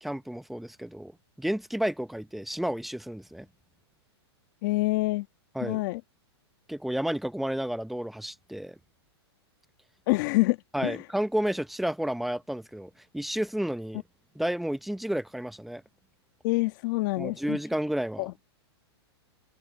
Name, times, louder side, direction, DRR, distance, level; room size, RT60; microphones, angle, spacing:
voice 1, 0.0-1.1 1.4-3.5 5.5-5.8 6.7-8.8 10.7-14.0 14.4-15.8 17.2-18.3, right 1 dB, ahead, 0.7 m, -31 dB
voice 2, 4.6-5.3 5.6-6.0 10.1-10.6 10.8-11.0 16.4-17.6 18.2-18.3, left 21 dB, 45° left, 1.4 m, -26 dB
hypercardioid pair, 145°, 14 cm